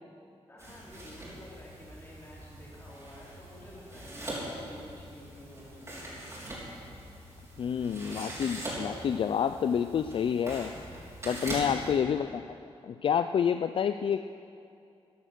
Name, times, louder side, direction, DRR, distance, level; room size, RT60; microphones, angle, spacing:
voice 1, 0.5-6.3 11.9-12.5, left 1 dB, 20° left, -6 dB, 3.7 m, -51 dB
sound 1, 0.6-11.9, right 1 dB, 25° right, 3.9 m, -42 dB
voice 2, 7.6-10.8 11.2-12.4 12.8-14.3, left 8 dB, 55° left, 10 dB, 0.3 m, -28 dB
13.5 x 11.0 x 6.7 m, 2.5 s
wide cardioid pair, 145°, 11 cm